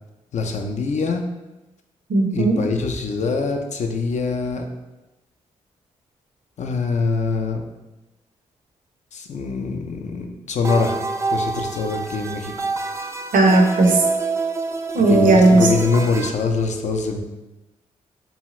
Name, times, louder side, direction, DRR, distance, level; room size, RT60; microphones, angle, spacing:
voice 1, 0.3-1.2 2.3-4.6 6.6-7.6 9.1-11.0 11.3-12.6 15.1-17.2, left 4 dB, 50° left, 4 dB, 0.4 m, -23 dB
voice 2, 2.1-2.6 13.3-14.0 14.9-15.6, right 2 dB, 65° right, 2 dB, 0.6 m, -15 dB
sound 1, 10.6-16.3, right 3 dB, 20° right, 0.3 m, -26 dB
2.7 x 2.4 x 3.0 m, 1.0 s
hypercardioid pair, 40°, 15 cm